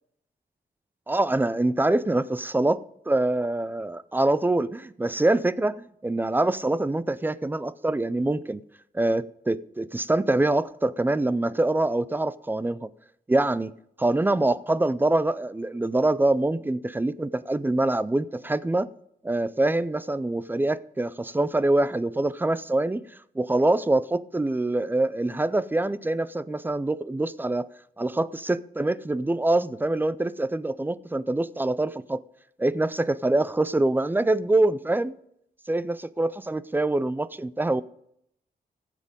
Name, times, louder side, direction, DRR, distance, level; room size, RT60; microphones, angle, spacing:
voice 1, 1.1-8.6 8.9-12.9 13.3-13.7 14.0-18.9 19.2-23.0 23.4-27.7 28.0-32.2 32.6-35.1 35.7-37.8, right 2 dB, 10° right, 0.4 m, -25 dB
16.5 x 7.5 x 5.2 m
wide cardioid pair, 150°, 17 cm